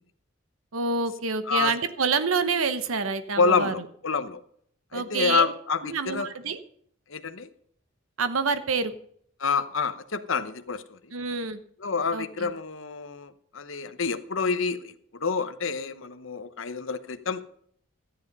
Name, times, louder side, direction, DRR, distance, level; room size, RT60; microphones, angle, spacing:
voice 1, 0.7-3.7 4.9-5.4 5.9-6.6 8.2-8.9 11.1-11.6 12.1-12.5, right 4 dB, 80° right, 11 dB, 1.0 m, -27 dB
voice 2, 3.4-4.4 4.9-6.3 7.1-7.5 9.4-11.0 11.8-17.4, left 5 dB, 70° left, 11 dB, 1.0 m, -28 dB
13.5 x 10.5 x 5.4 m, 0.64 s
head